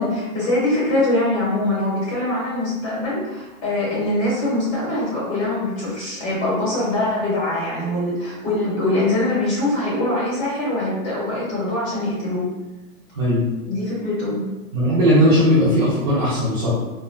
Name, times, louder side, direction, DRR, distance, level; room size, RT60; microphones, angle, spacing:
voice 1, 0.0-12.5 13.7-14.5, left 1 dB, 25° left, -6 dB, 1.2 m, -23 dB
voice 2, 14.7-16.7, equal, 20° right, -12 dB, 0.5 m, -17 dB
4.2 x 2.1 x 2.2 m, 1.1 s
supercardioid pair, 165°, 43 cm